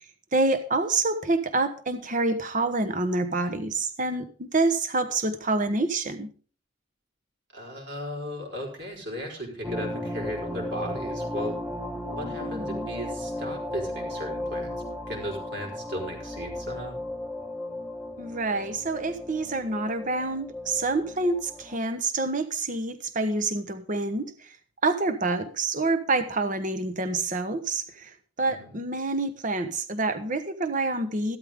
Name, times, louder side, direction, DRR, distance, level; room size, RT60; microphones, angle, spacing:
voice 1, 0.3-6.3 12.2-12.9 18.2-24.5 24.8-28.1 28.4-31.4, right 3 dB, 40° right, 9 dB, 1.2 m, -27 dB
voice 2, 7.5-11.6 12.1-14.7 15.1-17.0 28.5-28.8, equal, 60° right, 0 dB, 4.4 m, -36 dB
sound 1, 9.6-21.8, left 1 dB, 5° right, 1.1 m, -35 dB
14.0 x 12.5 x 3.7 m, 0.41 s
head